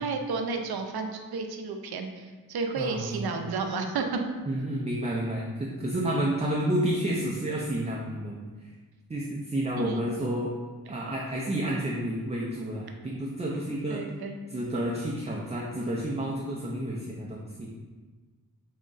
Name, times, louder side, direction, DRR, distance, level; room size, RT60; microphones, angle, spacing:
voice 1, 0.0-4.0 9.8-10.0 13.9-14.4, right 4 dB, 75° right, 4 dB, 0.5 m, -32 dB
voice 2, 2.8-3.4 4.5-8.5 9.1-10.5 10.9-14.0 14.5-17.7, right 1 dB, 20° right, -3 dB, 0.4 m, -30 dB
3.6 x 2.1 x 3.8 m, 1.4 s
wide cardioid pair, 70°, 38 cm